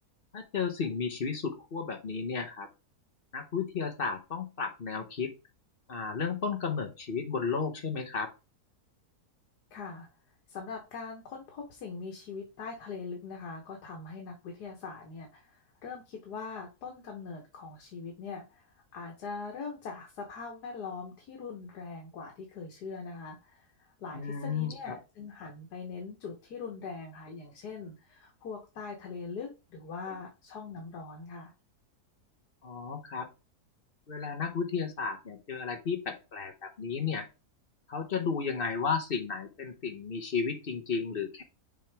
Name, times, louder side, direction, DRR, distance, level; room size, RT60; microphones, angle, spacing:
voice 1, 0.3-2.7 3.3-5.3 5.9-8.3 24.1-24.9 32.6-33.3 34.1-37.3 37.9-41.4, left 5 dB, 40° left, 4 dB, 0.9 m, -33 dB
voice 2, 9.7-10.1 10.5-18.7 18.9-31.5, left 4 dB, 80° left, 1 dB, 1.7 m, -42 dB
6.8 x 4.5 x 3.3 m, 0.29 s
omnidirectional pair, 1.7 m